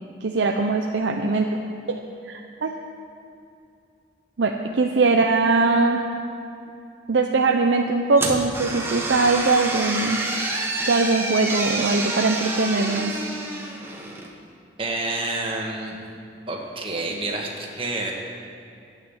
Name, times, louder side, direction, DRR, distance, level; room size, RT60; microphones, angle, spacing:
voice 1, 0.2-1.6 1.9-2.7 4.4-6.1 7.1-10.2 10.9-13.2, right 3 dB, 75° right, 2 dB, 0.7 m, -21 dB
sound 1, 8.2-14.3, right 2 dB, 10° right, 1.2 m, -28 dB
voice 2, 14.8-16.0 16.5-18.1, right 2 dB, 30° right, 0 dB, 1.6 m, -28 dB
12.5 x 9.3 x 7.3 m, 2.5 s
head